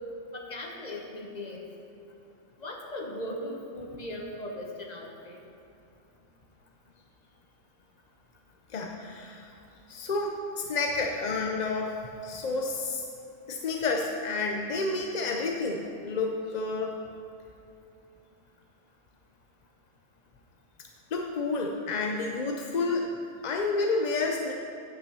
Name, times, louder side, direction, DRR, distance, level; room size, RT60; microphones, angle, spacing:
voice 1, 0.3-1.6 2.6-5.4, left 1 dB, 35° left, 0 dB, 1.2 m, -38 dB
voice 2, 8.7-9.5 9.9-11.9 12.2-13.0 13.5-16.9 21.1-23.1 23.4-24.5, left 3 dB, 50° left, 1 dB, 0.5 m, -30 dB
9.5 x 5.7 x 6.7 m, 2.6 s
omnidirectional pair, 1.3 m